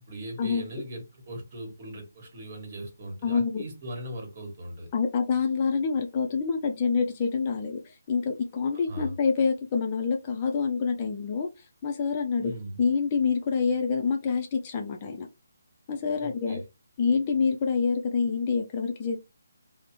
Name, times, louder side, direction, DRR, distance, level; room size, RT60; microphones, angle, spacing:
voice 1, 0.0-4.9 8.7-9.1 12.4-12.8 16.2-16.6, right 1 dB, 40° right, 1.4 m, -39 dB
voice 2, 3.2-3.7 4.9-11.5 11.8-12.5 12.8-15.3 15.9-16.6 17.0-19.2, left 5 dB, 30° left, 0.4 m, -26 dB
3.2 x 2.0 x 2.9 m
figure-of-eight pair, 145°, 0 cm